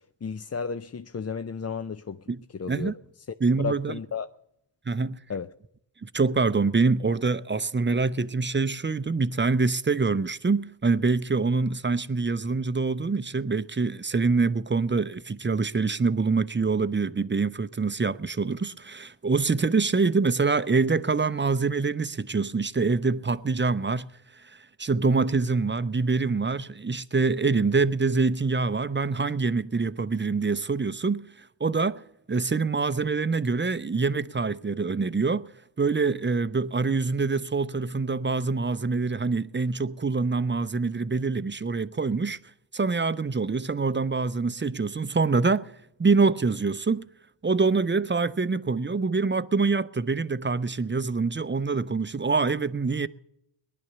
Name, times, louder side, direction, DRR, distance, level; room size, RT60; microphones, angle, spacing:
voice 1, 0.2-2.2 2.6-2.9 3.6-4.3 5.3-5.5, left 6 dB, 30° left, 0.6 m, -33 dB
voice 2, 3.4-4.0 4.9-5.2 6.0-35.5 35.8-42.4 42.7-47.1 47.4-53.1, right 4 dB, 25° right, 0.6 m, -25 dB
19.0 x 11.0 x 6.9 m
cardioid pair, 60°, 49 cm